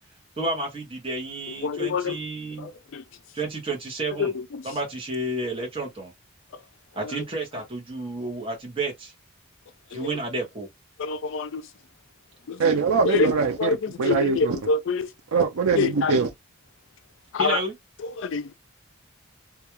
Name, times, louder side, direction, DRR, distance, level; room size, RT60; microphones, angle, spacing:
voice 1, 0.4-2.7 3.3-4.3 4.6-6.1 6.9-9.1 9.9-10.7 17.4-17.8, right 2 dB, 25° right, 0.8 m, -31 dB
voice 2, 1.6-2.2 2.6-3.0 4.2-4.6 11.0-11.6 12.5-12.6 13.0-13.3 13.6-15.1 15.8-16.2 17.3-17.6 18.2-18.5, left 4 dB, 60° left, 0.3 m, -26 dB
voice 3, 12.6-14.6 15.3-16.3, right 4 dB, 80° right, 0.5 m, -22 dB
2.3 x 2.2 x 2.9 m
head